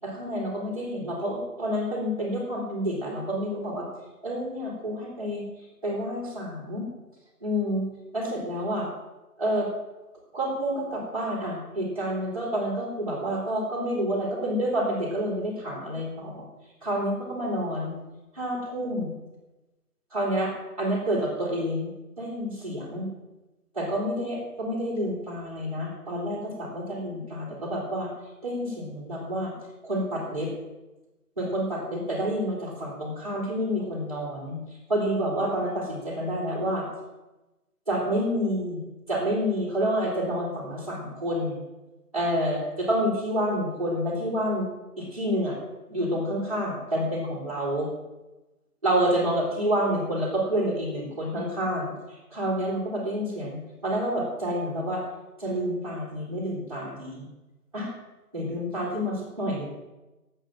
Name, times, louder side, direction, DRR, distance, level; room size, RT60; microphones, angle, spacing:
voice 1, 0.0-3.9 4.2-5.5 5.8-6.9 7.4-7.9 8.1-8.9 9.4-9.7 10.3-16.4 16.8-17.9 18.3-19.1 20.1-20.5 20.8-21.9 22.2-23.1 23.7-28.1 28.4-29.5 29.8-30.5 31.4-34.6 34.9-36.8 37.9-38.8 39.1-41.6 42.1-44.7 45.0-45.6 45.9-47.9 48.8-51.9 52.3-55.0 55.4-57.3 57.7-57.9 58.3-59.7, equal, 20° right, -6 dB, 4.3 m, -28 dB
14.0 x 8.9 x 7.8 m, 1.1 s
figure-of-eight pair, 170°, 46 cm